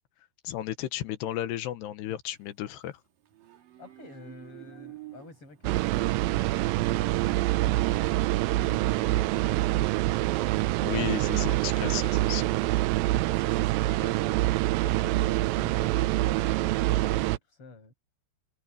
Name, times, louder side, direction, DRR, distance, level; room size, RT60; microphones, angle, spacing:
voice 1, 0.4-3.0 10.8-12.6, left 13 dB, 85° left, 3.4 m, -34 dB
Livestock farm animals working animals, 2.4-17.1, right 14 dB, 60° right, 3.5 m, -51 dB
voice 2, 3.8-8.3 8.6-11.6 12.5-14.6 14.8-17.9, left 2 dB, 30° left, 8.8 m, -47 dB
sound 1, 5.6-17.4, right 17 dB, 85° right, 2.0 m, -26 dB
omnidirectional pair, 4.7 m